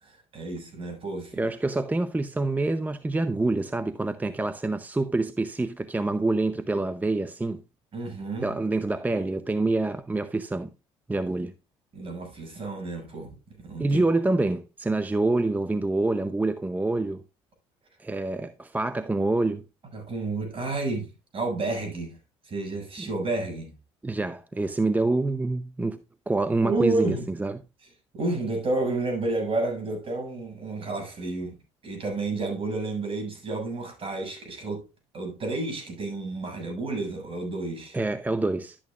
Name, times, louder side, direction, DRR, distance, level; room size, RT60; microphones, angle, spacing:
voice 1, 0.0-1.5 7.9-8.5 11.9-14.0 19.9-22.1 22.4-23.7 26.6-27.2 28.1-31.6 31.8-34.8 35.1-38.0, right 2 dB, 45° right, 6.9 m, -30 dB
voice 2, 1.3-7.6 8.4-10.7 11.1-11.5 13.8-17.2 18.0-19.6 23.0-23.1 24.0-27.6 37.9-38.8, right 2 dB, 10° right, 0.7 m, -26 dB
12.5 x 8.7 x 2.4 m
hypercardioid pair, 65°, 13 cm